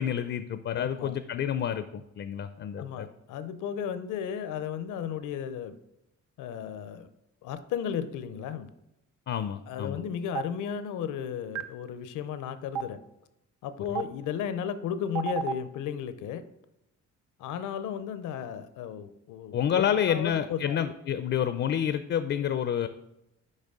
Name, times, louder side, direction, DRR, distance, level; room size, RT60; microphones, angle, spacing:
voice 1, 0.0-3.1 9.3-10.0 19.5-22.9, left 9 dB, 45° left, 11 dB, 0.4 m, -29 dB
voice 2, 0.7-1.2 2.8-5.7 6.4-7.1 7.4-8.7 9.7-13.0 13.6-16.4 17.4-20.8, left 8 dB, 85° left, 12 dB, 0.6 m, -34 dB
Stream, 10.4-10.5 11.6-11.7 12.8-12.9 14.0-14.1 15.2-15.5, right 8 dB, 85° right, 0.6 m, -28 dB
6.5 x 5.0 x 3.6 m, 0.87 s
cardioid pair, 90°, 30 cm